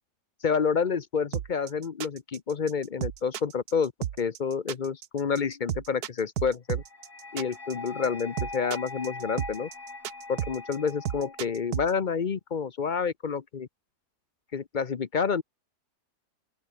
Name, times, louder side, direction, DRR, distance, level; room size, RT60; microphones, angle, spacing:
voice 1, 0.4-3.9 4.2-6.8 7.3-9.7 10.3-13.7 14.5-15.4, left 6 dB, 40° left, 0.7 m, -29 dB
sound 1, 1.3-11.9, right 11 dB, 70° right, 1.4 m, -33 dB
sound 2, 6.8-11.8, left 3 dB, 65° left, 5.5 m, -42 dB
open air
omnidirectional pair, 1.8 m